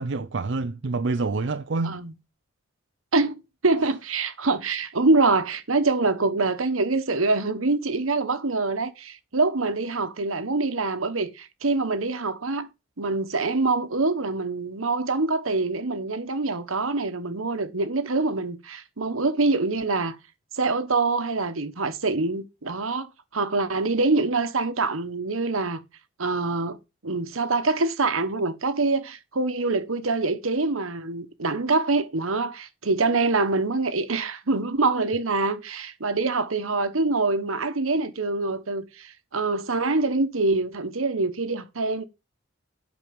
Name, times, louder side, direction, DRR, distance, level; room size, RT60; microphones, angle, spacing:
voice 1, 0.0-2.0, right 3 dB, 60° right, 0.5 m, -27 dB
voice 2, 3.6-12.7 13.0-20.2 20.5-25.8 26.2-26.8 27.0-42.0, right 3 dB, 85° right, 1.2 m, -25 dB
9.0 x 6.1 x 5.3 m
head